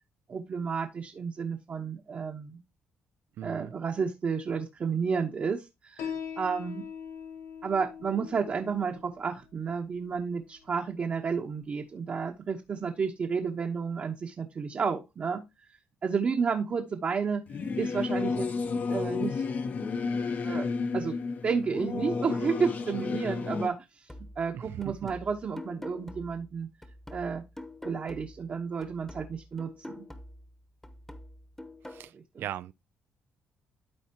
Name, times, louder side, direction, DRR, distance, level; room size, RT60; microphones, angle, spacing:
voice 1, 0.3-2.6 3.4-6.8 7.6-15.4 16.0-17.4 17.8-18.5 18.9-19.5 20.4-20.7 20.9-21.1 21.4-24.1 24.4-26.7 27.1-27.4 27.8-30.1 32.1-32.5, right 5 dB, 45° right, 1.0 m, -31 dB
voice 2, 3.4-3.7 24.5-25.0 31.9-32.7, right 11 dB, 70° right, 0.3 m, -39 dB
Piano, 6.0-13.0, left 7 dB, 85° left, 0.9 m, -44 dB
Singing / Musical instrument, 17.5-23.7, left 4 dB, 45° left, 0.7 m, -31 dB
sound 1, 24.1-28.5 28.8-32.1, left 1 dB, 10° left, 1.0 m, -46 dB
12.0 x 4.2 x 2.9 m
cardioid pair, 75°, 4 cm